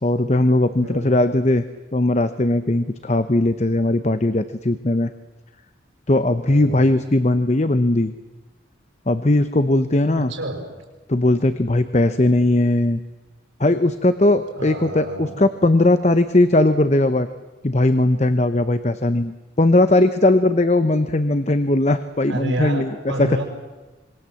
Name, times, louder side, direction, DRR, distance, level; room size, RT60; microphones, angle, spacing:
voice 1, 0.0-1.7 1.9-5.1 6.1-8.1 9.1-10.3 11.1-13.0 13.6-17.3 17.6-23.4, left 2 dB, 35° left, 11 dB, 0.8 m, -18 dB
voice 2, 6.5-6.9 10.1-10.6 14.5-15.3 22.3-23.4, right 2 dB, 90° right, 3 dB, 6.1 m, -29 dB
26.0 x 23.0 x 7.7 m, 1.2 s
head